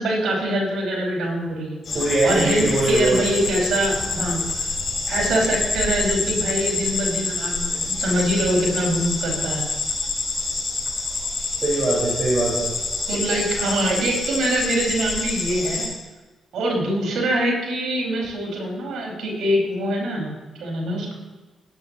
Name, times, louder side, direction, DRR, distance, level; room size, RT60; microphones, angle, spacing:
voice 1, 0.0-4.4 5.1-9.7 13.1-15.9 16.5-20.3 20.6-21.1, right 1 dB, 70° right, -1 dB, 5.3 m, -24 dB
sound 1, 1.8-15.9, left 3 dB, 50° left, 4.9 m, -27 dB
voice 2, 1.9-3.2 11.6-12.7, right 2 dB, 45° right, -7 dB, 4.7 m, -21 dB
21.5 x 11.5 x 3.0 m, 1.2 s
hypercardioid pair, 45°, 0 cm